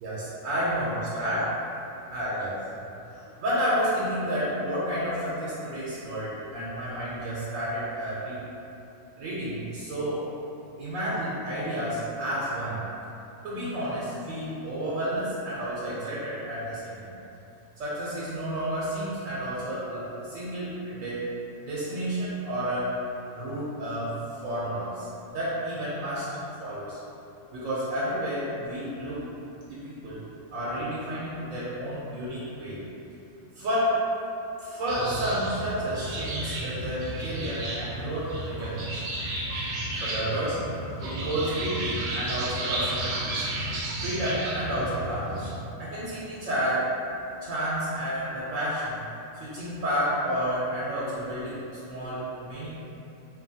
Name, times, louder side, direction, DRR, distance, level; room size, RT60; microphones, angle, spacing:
voice 1, 0.0-1.5 2.1-2.5 3.1-8.4 9.2-10.2 10.8-12.8 13.4-17.1 17.8-21.3 21.6-22.9 23.3-26.3 26.6-27.0 27.5-29.3 29.6-30.2 30.5-32.8 33.5-34.1 34.6-39.0 40.0-40.6 41.0-43.5 44.0-45.5 45.8-46.9 47.4-49.0 49.3-52.7, equal, 90° right, -9 dB, 1.0 m, -30 dB
sound 1, 34.9-45.6, right 1 dB, 65° right, 0.6 m, -33 dB
2.9 x 2.2 x 2.6 m, 2.8 s
omnidirectional pair, 1.3 m